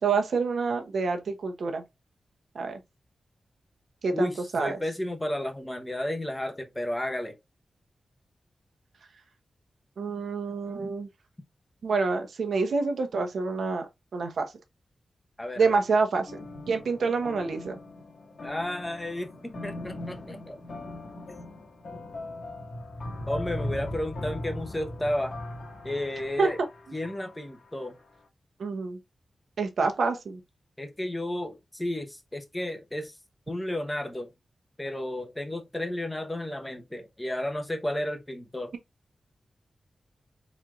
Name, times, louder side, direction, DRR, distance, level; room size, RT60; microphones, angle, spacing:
voice 1, 0.0-1.8 2.5-2.8 4.0-4.8 10.0-11.1 11.8-14.5 15.6-16.4 16.7-17.8 26.4-26.5 28.6-29.0 29.6-30.4, right 4 dB, 80° right, 0.9 m, -27 dB
voice 2, 4.1-7.3 15.4-15.8 18.4-20.6 23.3-25.4 25.8-26.6 26.9-28.0 30.8-33.1 33.5-34.3 34.8-38.7, left 1 dB, 10° left, 0.9 m, -32 dB
sound 1, 16.3-27.7, left 1 dB, 60° left, 1.5 m, -39 dB
4.5 x 4.1 x 2.4 m
wide cardioid pair, 150°, 0 cm